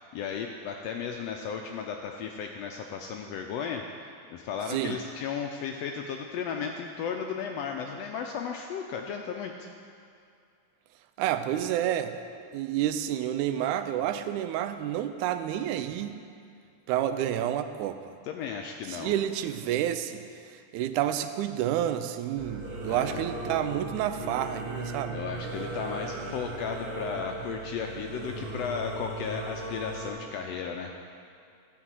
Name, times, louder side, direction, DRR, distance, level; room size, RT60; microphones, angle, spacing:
voice 1, 0.0-9.7 18.2-19.1 22.8-23.2 25.1-30.9, left 6 dB, 80° left, 3 dB, 1.5 m, -35 dB
voice 2, 11.2-12.2 12.5-16.2 16.9-18.0 18.9-25.2, right 11 dB, 90° right, 10 dB, 2.0 m, -29 dB
Singing / Musical instrument, 22.4-30.1, right 2 dB, 60° right, 2.7 m, -37 dB
12.5 x 4.7 x 7.4 m, 2.4 s
omnidirectional pair, 3.4 m